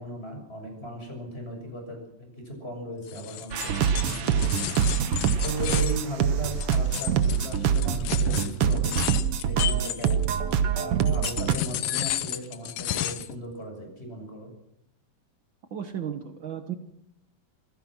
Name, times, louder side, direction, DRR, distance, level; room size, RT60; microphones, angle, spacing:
voice 1, 0.0-4.7 5.4-9.0 9.4-10.3 10.8-14.5, right 1 dB, 15° left, 3 dB, 6.7 m, -37 dB
sound 1, 3.1-10.5 11.0-13.4, left 12 dB, 80° left, 2.7 m, -33 dB
sound 2, 3.5-11.6, right 8 dB, 70° right, 1.4 m, -25 dB
voice 2, 15.7-16.7, right 9 dB, 85° right, 7 dB, 1.0 m, -34 dB
27.0 x 15.5 x 6.2 m, 0.75 s
omnidirectional pair, 4.1 m